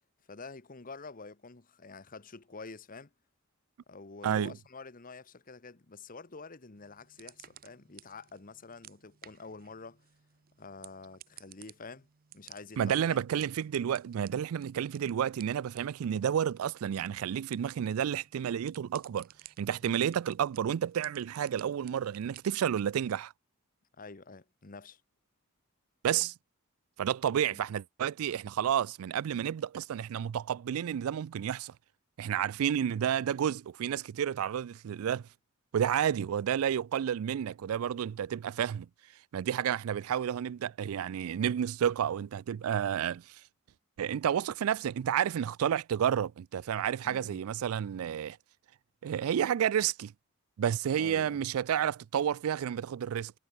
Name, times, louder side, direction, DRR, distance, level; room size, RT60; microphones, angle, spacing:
voice 1, 0.3-3.1 3.9-10.0 10.6-12.1 12.3-13.2 19.9-20.1 24.0-25.0 27.5-27.6 47.0-47.4 51.0-51.4, left 4 dB, 40° left, 1.1 m, -48 dB
sound 1, 6.8-22.7, right 12 dB, 45° right, 0.6 m, -56 dB
voice 2, 12.8-19.3 19.6-23.3 26.0-26.3 27.0-31.7 32.2-35.3 35.7-38.9 39.3-43.4 44.0-48.4 49.0-50.1 50.6-53.3, right 9 dB, 85° right, 0.3 m, -30 dB
head